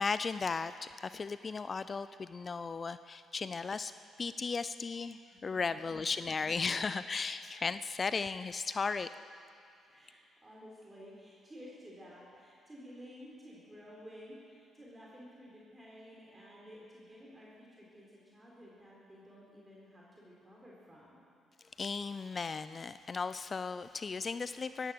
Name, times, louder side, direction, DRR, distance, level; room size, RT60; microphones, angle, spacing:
voice 1, 0.0-3.9 4.2-9.1 21.8-24.9, left 4 dB, 40° left, 13 dB, 0.4 m, -36 dB
voice 2, 9.9-21.2, equal, 20° right, -4 dB, 4.2 m, -53 dB
15.0 x 11.5 x 7.8 m, 2.4 s
supercardioid pair, 65°, 0 cm